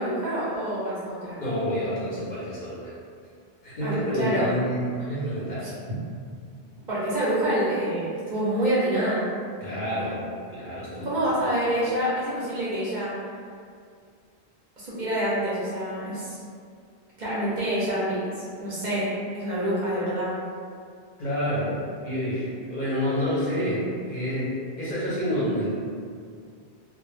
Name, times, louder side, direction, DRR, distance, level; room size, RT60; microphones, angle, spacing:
voice 1, 0.0-1.4 3.8-4.5 5.6-5.7 6.9-9.2 11.0-13.1 14.8-16.4 17.2-18.3 18.6-20.3, right 1 dB, 50° right, -9 dB, 0.6 m, -27 dB
voice 2, 1.4-2.9 3.6-5.7 9.6-10.2 10.5-11.2 21.2-21.7 22.0-25.7, equal, 50° left, -9 dB, 0.7 m, -28 dB
2.0 x 2.0 x 3.1 m, 2.2 s
omnidirectional pair, 1.1 m